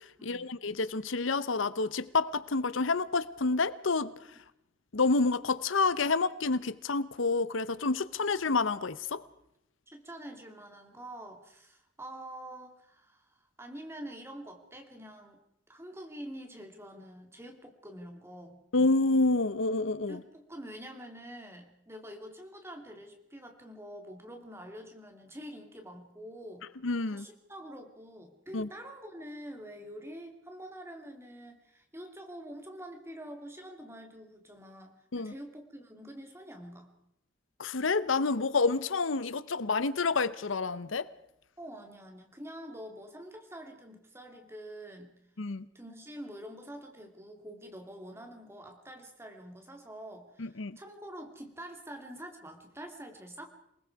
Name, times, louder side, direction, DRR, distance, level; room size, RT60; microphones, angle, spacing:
voice 1, 0.2-4.1 4.9-9.2 18.7-20.2 26.8-27.2 28.5-28.7 35.1-35.3 37.6-41.1 45.4-45.6 50.4-50.8, left 3 dB, 80° left, 16 dB, 0.8 m, -28 dB
voice 2, 9.9-15.4 15.7-18.6 20.1-26.7 27.1-36.9 41.6-45.1 45.7-53.5, equal, 15° right, 4 dB, 2.7 m, -46 dB
27.5 x 20.0 x 4.7 m, 0.79 s
head